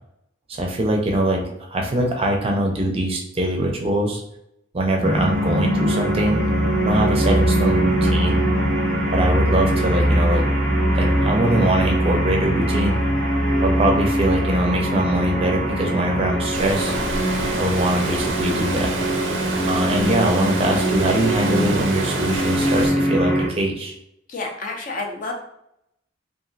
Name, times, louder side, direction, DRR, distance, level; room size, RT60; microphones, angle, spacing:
voice 1, 0.5-4.2 4.7-6.4 6.8-8.5 9.1-10.4 11.0-13.0 13.6-16.9 17.6-18.9 19.7-23.9, right 1 dB, 30° right, 1 dB, 0.5 m, -22 dB
sound 1, 5.0-23.5, right 1 dB, 10° left, 0.8 m, -22 dB
Water, 16.5-22.9, right 3 dB, 80° right, 0.5 m, -28 dB
voice 2, 24.3-25.3, left 3 dB, 45° left, 2 dB, 0.5 m, -29 dB
2.9 x 2.5 x 2.6 m, 0.76 s
head